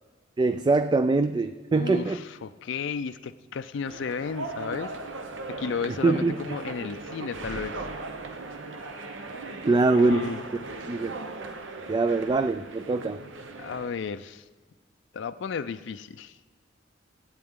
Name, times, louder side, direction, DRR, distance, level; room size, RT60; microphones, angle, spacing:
voice 1, 0.4-2.2 6.0-6.4 9.7-10.3 10.9-11.2 11.9-13.2, right 3 dB, 25° right, 11 dB, 0.3 m, -23 dB
voice 2, 1.7-4.9 5.5-7.8 10.0-10.4 13.6-14.5 15.1-16.4, left 5 dB, 65° left, 10 dB, 0.4 m, -33 dB
sound 1, 3.8-14.0, right 2 dB, 75° right, 0.9 m, -38 dB
24.0 x 8.7 x 3.7 m, 1.5 s
head